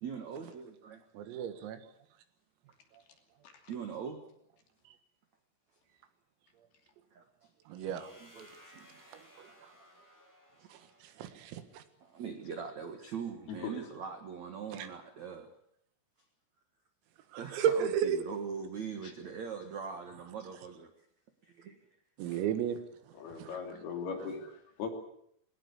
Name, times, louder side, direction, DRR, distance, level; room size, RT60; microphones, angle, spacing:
voice 1, 0.0-1.0 3.7-4.2 7.1-7.5 7.9-9.0 12.0-15.5 17.4-20.9 21.4-21.8 22.2-22.3, right 6 dB, 65° right, 6 dB, 1.8 m, -42 dB
voice 2, 1.1-1.8 7.7-8.1 9.1-9.5 10.7-10.8 11.0-11.8 14.8-14.9 17.3-18.2 22.2-22.8 23.4-23.5, right 9 dB, 85° right, 10 dB, 4.4 m, -33 dB
sound 1, 7.8-11.6, equal, 5° left, 6.4 m, -60 dB
voice 3, 13.5-13.9 19.0-19.1 23.1-24.9, left 5 dB, 55° left, 5 dB, 4.4 m, -39 dB
21.5 x 18.5 x 8.2 m, 0.70 s
omnidirectional pair, 5.9 m